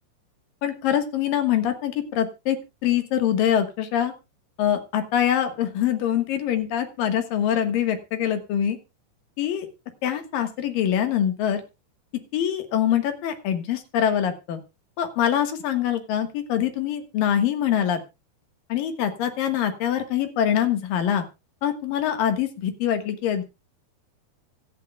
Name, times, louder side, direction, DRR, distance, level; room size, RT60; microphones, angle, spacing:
voice 1, 0.6-2.6 2.8-4.1 4.6-8.8 9.4-9.7 10.0-11.6 12.3-14.6 15.0-18.0 18.7-21.2 21.6-23.4, left 10 dB, 65° left, 7 dB, 2.6 m, -24 dB
25.0 x 8.3 x 2.3 m, 0.26 s
omnidirectional pair, 5.2 m